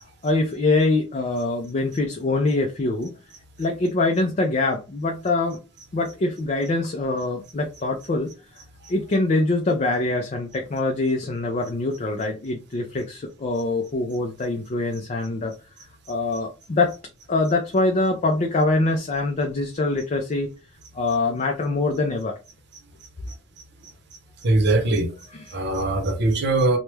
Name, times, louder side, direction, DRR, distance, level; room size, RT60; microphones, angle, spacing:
voice 1, 0.2-3.1 3.6-5.6 5.9-8.3 8.9-15.5 16.1-16.9 17.3-20.5 20.9-22.4 25.3-25.8, left 2 dB, 35° left, 0.4 m, -24 dB
voice 2, 24.4-25.1 25.5-26.8, right 2 dB, 60° right, 0.7 m, -21 dB
3.0 x 2.1 x 3.3 m
head